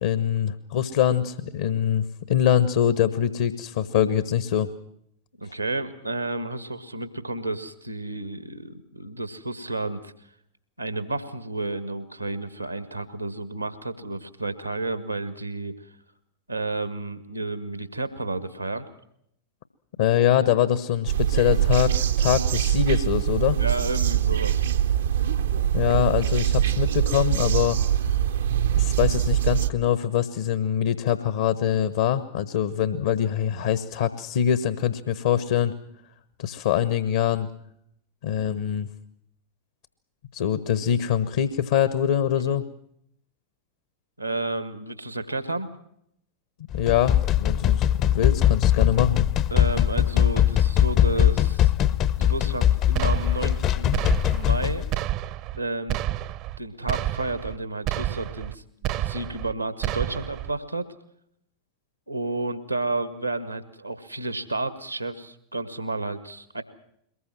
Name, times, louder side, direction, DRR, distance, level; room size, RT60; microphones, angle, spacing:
voice 1, 0.0-4.7 20.0-23.6 25.7-27.8 28.8-35.7 36.4-37.5 38.2-38.9 40.3-42.7 46.7-49.3, left 9 dB, 60° left, 14 dB, 1.2 m, -23 dB
voice 2, 5.4-10.1 10.8-15.9 16.5-18.9 23.6-24.7 42.4-42.5 44.2-45.7 49.5-51.7 52.2-54.9 55.5-56.0 56.6-60.9 62.1-66.6, right 2 dB, 85° right, 12 dB, 1.7 m, -31 dB
sound 1, 21.1-29.7, right 10 dB, 65° right, 0.9 m, -23 dB
sound 2, 46.7-54.9, left 11 dB, 35° left, 0.8 m, -21 dB
sound 3, 53.0-53.6 53.9-54.6 54.9-55.6 55.9-56.6 56.9-57.6 57.9-58.6 58.8-59.5 59.8-60.5, right 14 dB, 40° right, 0.8 m, -29 dB
23.0 x 20.5 x 7.7 m, 0.72 s
figure-of-eight pair, 90°, 0 cm